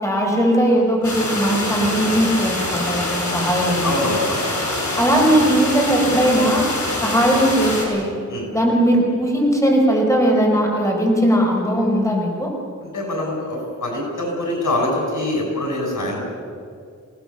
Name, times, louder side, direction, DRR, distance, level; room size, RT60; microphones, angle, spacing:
voice 1, 0.0-4.0 5.0-6.6 7.0-8.1 8.5-12.5, equal, 10° left, 0 dB, 5.1 m, -18 dB
sound 1, 1.0-7.8, left 1 dB, 70° left, 6.8 m, -25 dB
voice 2, 3.8-4.4 8.3-8.5 12.9-16.2, left 1 dB, 85° left, 0 dB, 6.6 m, -24 dB
27.0 x 18.0 x 7.2 m, 2.3 s
wide cardioid pair, 80°, 30 cm